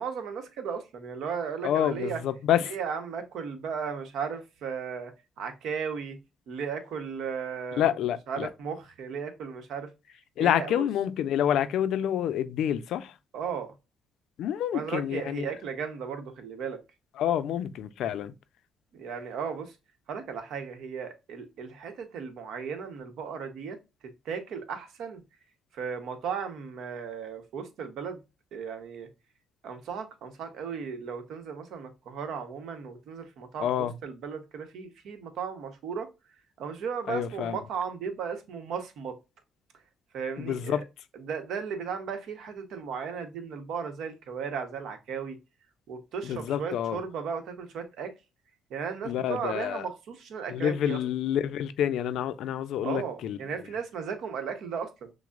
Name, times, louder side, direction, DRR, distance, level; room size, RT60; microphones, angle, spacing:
voice 1, 0.0-2.2 2.7-6.2 6.5-8.0 8.3-9.9 10.4-10.8 13.3-13.7 14.7-16.8 18.9-19.8 20.1-23.8 24.2-25.2 25.7-28.2 28.5-29.1 29.6-36.1 36.6-39.2 40.1-40.8 41.2-45.4 45.9-48.1 48.7-51.0 52.8-55.1, right 6 dB, 80° right, 0.9 m, -35 dB
voice 2, 1.6-2.7 7.8-8.5 10.4-13.2 14.4-15.5 17.2-18.3 33.6-33.9 37.1-37.6 40.4-40.8 46.2-47.0 49.0-49.9 50.5-53.4, left 10 dB, 80° left, 0.4 m, -28 dB
6.1 x 2.0 x 2.4 m
cardioid pair, 90°, 0 cm